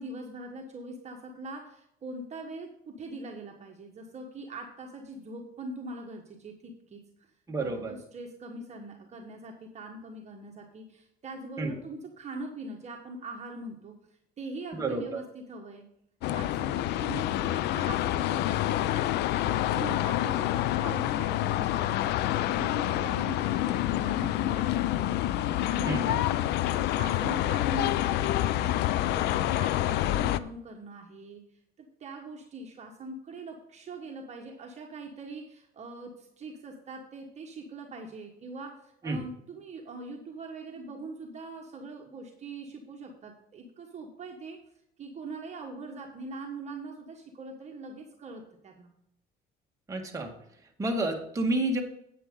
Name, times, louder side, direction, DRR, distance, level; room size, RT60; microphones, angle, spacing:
voice 1, 0.0-7.0 7.6-13.9 14.4-15.8 16.3-19.1 19.4-25.1 25.7-26.3 26.6-31.4 31.8-44.6 45.0-48.9, right 2 dB, 40° right, 1 dB, 1.5 m, -42 dB
voice 2, 7.5-7.9 11.6-11.7 14.7-15.2 25.9-26.2 39.0-39.2 49.9-50.3 50.8-51.8, right 2 dB, 20° right, 1 dB, 1.9 m, -30 dB
sound 1, 16.2-30.4, left 14 dB, 80° left, 0.5 m, -27 dB
9.9 x 8.8 x 3.8 m, 0.74 s
cardioid pair, 110°, 17 cm